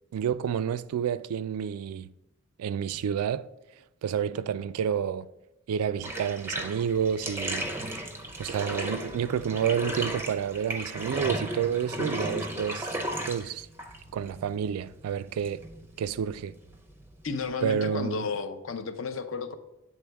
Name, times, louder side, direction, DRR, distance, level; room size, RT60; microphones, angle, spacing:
voice 1, 0.1-2.1 2.6-3.5 4.0-5.3 5.7-7.7 8.4-13.0 13.3-13.7 14.1-15.6 16.0-16.6 17.6-18.3, right 8 dB, 90° right, 0.3 m, -29 dB
Bathtub (filling or washing), 6.0-17.6, right 1 dB, 10° right, 0.5 m, -35 dB
voice 2, 17.2-19.6, left 4 dB, 60° left, 0.6 m, -32 dB
8.4 x 3.8 x 3.4 m
head